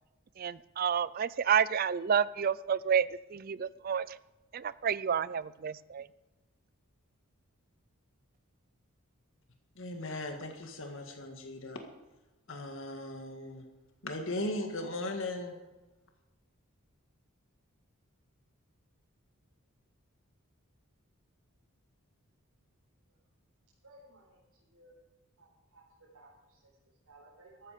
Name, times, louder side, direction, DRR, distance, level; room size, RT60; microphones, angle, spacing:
voice 1, 0.4-4.2 4.5-6.1, right 7 dB, 40° right, 18 dB, 0.4 m, -30 dB
voice 2, 9.8-11.8 12.5-13.6 14.0-15.5, left 1 dB, 60° left, 4 dB, 1.8 m, -38 dB
voice 3, 23.8-25.0 25.3-27.7, right 2 dB, 80° right, -6 dB, 4.7 m, -59 dB
14.0 x 13.5 x 5.1 m, 1.1 s
head